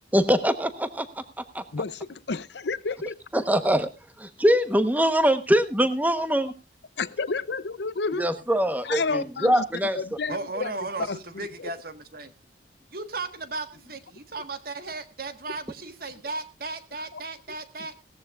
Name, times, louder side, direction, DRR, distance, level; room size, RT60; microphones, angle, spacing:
voice 1, 0.1-1.2 3.3-3.9 4.2-6.5 8.2-10.0, equal, 10° right, 1.1 m, -23 dB
voice 2, 2.3-3.1 7.0-8.3 8.8-9.6 9.9-10.7 11.1-11.2 11.6-11.7 17.1-17.2, left 4 dB, 65° left, 0.7 m, -30 dB
voice 3, 10.3-12.3 12.9-17.9, right 3 dB, 50° right, 1.6 m, -35 dB
18.0 x 14.0 x 2.4 m
head